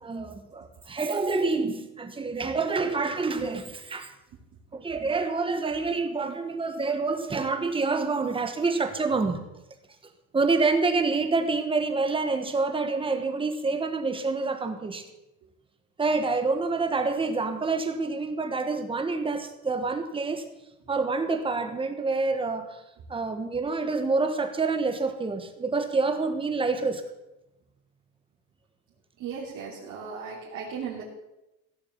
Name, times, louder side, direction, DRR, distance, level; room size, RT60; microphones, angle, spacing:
voice 1, 0.0-4.1 4.7-9.5 10.3-15.0 16.0-20.5 20.9-22.8 23.1-27.0, right 3 dB, 15° right, 7 dB, 1.3 m, -27 dB
voice 2, 29.2-31.0, right 6 dB, 55° right, -4 dB, 3.2 m, -36 dB
16.5 x 7.1 x 7.3 m, 0.93 s
cardioid pair, 160°, 35 cm